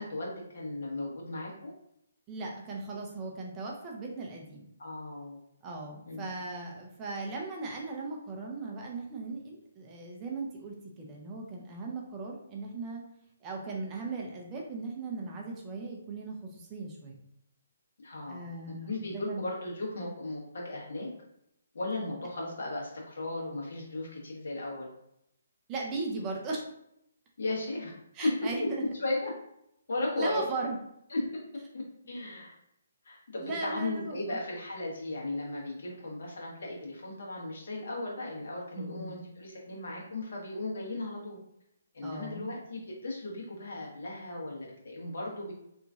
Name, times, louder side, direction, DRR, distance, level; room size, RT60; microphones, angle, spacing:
voice 1, 0.0-1.7 4.8-5.4 6.1-6.2 18.0-21.1 21.7-24.9 27.4-27.9 28.2-28.3 28.8-29.3 29.9-30.4 31.1-31.2 31.7-32.5 33.0-41.4 41.9-45.5, left 2 dB, 65° left, -3 dB, 1.3 m, -36 dB
voice 2, 2.3-4.7 5.6-13.0 13.4-17.2 18.3-19.5 25.7-26.6 28.1-28.6 30.2-30.8 33.4-34.4 38.7-39.2 42.0-42.5, right 3 dB, 15° right, -1 dB, 0.4 m, -38 dB
3.0 x 2.5 x 3.5 m, 0.78 s
hypercardioid pair, 170°, 0 cm